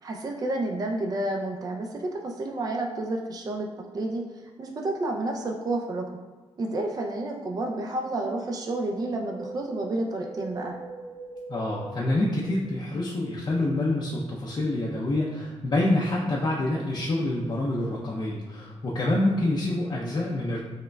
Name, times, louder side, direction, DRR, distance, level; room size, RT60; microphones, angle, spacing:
voice 1, 0.0-3.7 3.9-6.2 6.6-10.7, right 2 dB, 35° right, 1 dB, 0.4 m, -30 dB
Wind, 9.0-13.3 13.6-13.7, right 2 dB, 75° right, 0.7 m, -42 dB
voice 2, 11.5-20.6, left 1 dB, 40° left, -5 dB, 0.5 m, -27 dB
6.3 x 2.1 x 2.3 m, 1.3 s
cardioid pair, 85°, 11 cm